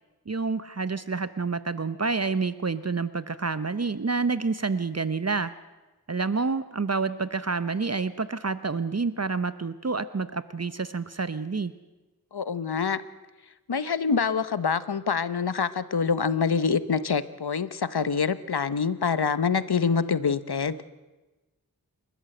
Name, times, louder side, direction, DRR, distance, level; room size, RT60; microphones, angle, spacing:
voice 1, 0.3-5.5 6.1-11.7, right 4 dB, 40° right, 14 dB, 0.8 m, -28 dB
voice 2, 12.3-13.0 13.7-20.8, left 5 dB, 85° left, 15 dB, 0.9 m, -26 dB
29.0 x 13.5 x 7.8 m, 1.1 s
wide cardioid pair, 55°, 38 cm